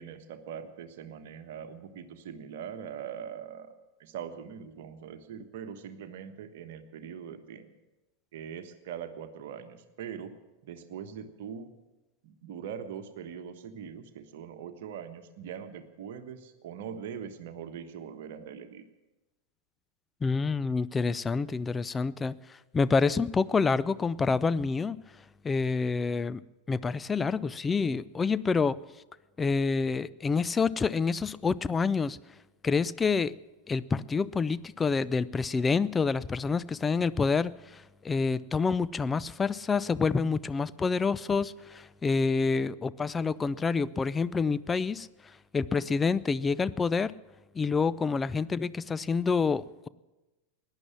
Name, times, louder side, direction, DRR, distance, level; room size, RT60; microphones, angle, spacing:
voice 1, 0.0-3.7 4.0-7.7 8.3-10.3 10.6-11.7 12.2-18.8, right 8 dB, 55° right, 8 dB, 1.3 m, -42 dB
voice 2, 20.2-22.4 22.7-25.0 25.4-26.4 26.7-28.8 29.4-32.2 32.6-33.3 33.7-45.1 45.5-47.1 47.5-49.9, left 4 dB, 15° left, 17 dB, 0.4 m, -27 dB
17.5 x 10.5 x 7.4 m, 1.1 s
figure-of-eight pair, 90°, 0 cm